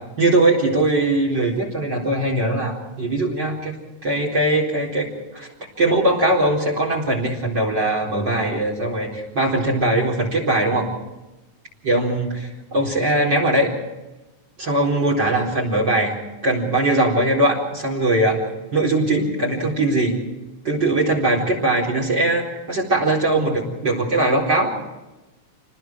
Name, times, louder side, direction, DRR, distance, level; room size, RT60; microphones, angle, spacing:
voice 1, 0.2-3.8 4.0-5.5 5.8-10.9 11.8-13.7 14.6-16.1 16.4-18.4 18.7-20.1 20.6-24.7, right 2 dB, 35° right, -1 dB, 4.7 m, -20 dB
29.0 x 20.5 x 4.6 m, 1.1 s
omnidirectional pair, 3.6 m